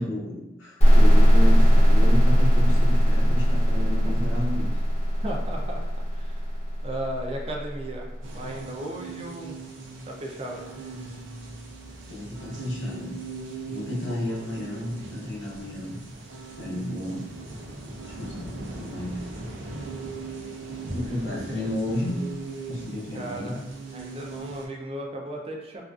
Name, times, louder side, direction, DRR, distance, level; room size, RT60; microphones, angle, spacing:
voice 1, 0.0-4.7 12.1-13.2 13.6-16.0 16.6-17.2 18.0-19.2 20.9-22.2 22.7-23.6, left 1 dB, 90° left, -5 dB, 0.7 m, -32 dB
sound 1, 0.8-8.3, equal, 35° left, 0.6 m, -19 dB
voice 2, 5.2-6.5 6.8-8.1 8.3-9.6 10.1-10.7 14.1-14.4 20.9-21.7 23.1-23.6 23.9-25.8, right 1 dB, 30° right, 0 dB, 0.3 m, -36 dB
sound 2, 8.2-24.7, right 3 dB, 85° right, 0.5 m, -39 dB
2.4 x 2.3 x 2.3 m, 0.98 s
head